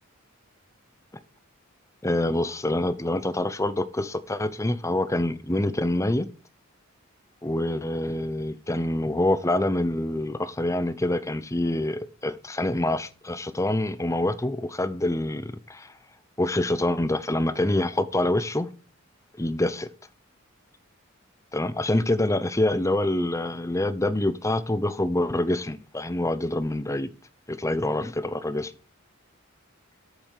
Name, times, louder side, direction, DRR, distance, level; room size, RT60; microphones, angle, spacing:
voice 1, 2.0-6.3 7.4-15.9 16.4-18.7 19.4-19.9 21.5-27.1 27.5-28.7, left 1 dB, 15° left, 0.8 m, -26 dB
8.3 x 7.1 x 6.5 m
head